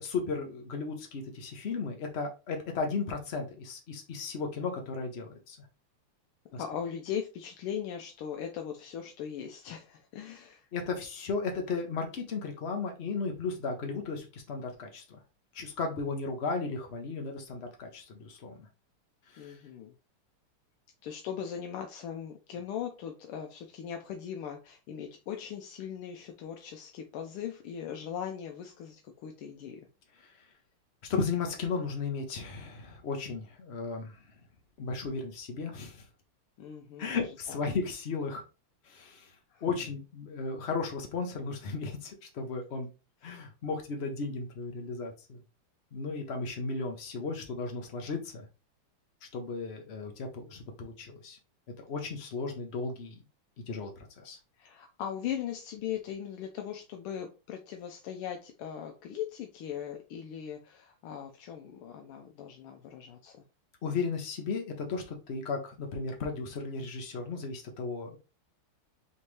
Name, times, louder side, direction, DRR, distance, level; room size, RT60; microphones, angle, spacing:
voice 1, 0.0-5.6 6.5-6.6 10.7-15.2 15.5-18.7 19.3-19.5 31.1-34.2 34.8-36.0 37.0-38.4 38.9-39.3 39.6-42.9 43.2-45.4 45.9-48.4 49.3-51.4 51.8-53.2 53.7-54.4 63.8-68.2, left 4 dB, 65° left, 3 dB, 0.6 m, -35 dB
voice 2, 6.6-10.7 19.4-19.9 21.0-29.8 36.6-37.6 38.9-39.1 39.5-39.8 43.2-43.3 54.6-63.4, left 9 dB, 85° left, 3 dB, 1.6 m, -39 dB
4.3 x 3.5 x 3.1 m, 0.30 s
omnidirectional pair, 2.4 m